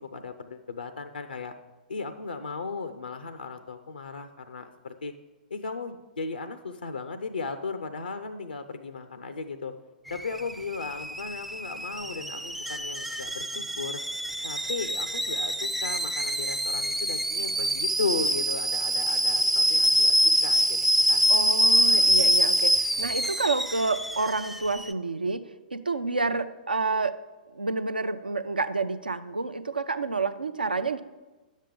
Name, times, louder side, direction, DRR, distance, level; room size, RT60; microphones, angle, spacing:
voice 1, 0.0-1.5 1.9-5.1 5.5-9.7 10.1-14.0 14.4-21.2 21.9-22.1, left 4 dB, 85° left, 10 dB, 0.5 m, -36 dB
Alarm / Boiling, 10.1-24.9, equal, 5° right, 0.3 m, -25 dB
voice 2, 21.3-27.2 27.5-31.0, right 3 dB, 90° right, 11 dB, 0.5 m, -29 dB
10.0 x 7.4 x 3.7 m, 1.2 s
figure-of-eight pair, 110°, 5 cm